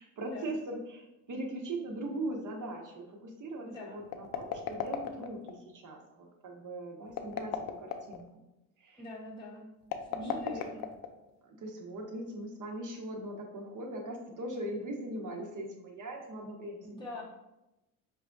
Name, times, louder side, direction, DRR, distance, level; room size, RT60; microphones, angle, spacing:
voice 1, 0.0-8.4 8.8-9.0 10.2-10.6 11.4-17.2, right 1 dB, 40° right, 1 dB, 0.9 m, -40 dB
voice 2, 3.6-4.0 9.0-9.7 10.0-10.9 16.8-17.2, left 2 dB, 10° left, -6 dB, 0.8 m, -44 dB
sound 1, 4.0-5.5 7.1-8.2 9.8-11.4, left 8 dB, 50° left, 0.5 m, -36 dB
4.8 x 2.3 x 2.5 m, 0.94 s
supercardioid pair, 65°, 46 cm